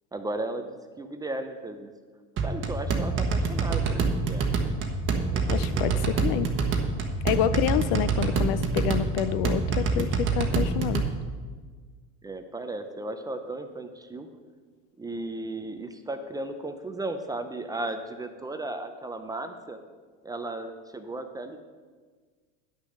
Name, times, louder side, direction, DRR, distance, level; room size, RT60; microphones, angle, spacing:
voice 1, 0.1-1.9 2.4-4.6 5.3-6.1 12.2-14.3 15.0-19.8 20.2-21.6, right 2 dB, 10° right, 7 dB, 0.5 m, -35 dB
sound 1, 2.4-11.1, right 4 dB, 35° right, 1.2 m, -26 dB
voice 2, 5.5-6.5 7.2-11.1, left 11 dB, 55° left, 15 dB, 0.6 m, -28 dB
9.8 x 6.4 x 6.4 m, 1.5 s
supercardioid pair, 125°, 37 cm